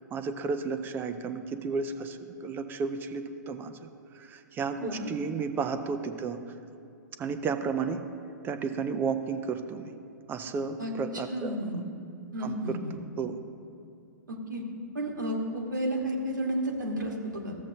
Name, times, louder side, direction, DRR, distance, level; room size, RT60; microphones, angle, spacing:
voice 1, 0.0-3.9 4.1-6.4 7.2-8.0 8.4-9.9 10.3-11.6 12.4-12.8 13.2-13.4, right 5 dB, 20° right, 9 dB, 0.5 m, -33 dB
voice 2, 4.8-5.1 10.8-10.9 11.3-11.8 12.3-12.9 14.3-14.6 14.9-17.6, right 1 dB, 80° right, 0 dB, 1.5 m, -32 dB
14.0 x 7.3 x 2.7 m, 2.6 s
figure-of-eight pair, 115°, 10 cm